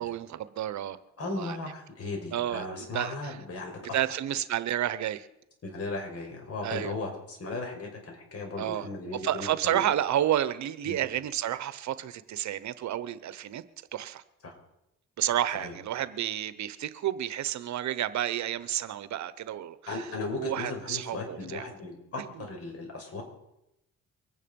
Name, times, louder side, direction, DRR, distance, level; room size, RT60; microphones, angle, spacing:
voice 1, 0.0-1.6 2.3-3.4 3.8-5.3 6.6-6.9 8.6-8.9 9.2-13.6 13.9-14.2 15.2-21.7 22.2-22.4, right 11 dB, 70° right, 0.9 m, -31 dB
voice 2, 1.2-3.8 5.6-9.8 10.9-11.0 14.4-14.5 15.5-15.7 19.9-23.2, left 3 dB, 50° left, 5.7 m, -36 dB
23.5 x 9.9 x 5.3 m
cardioid pair, 90°, 30 cm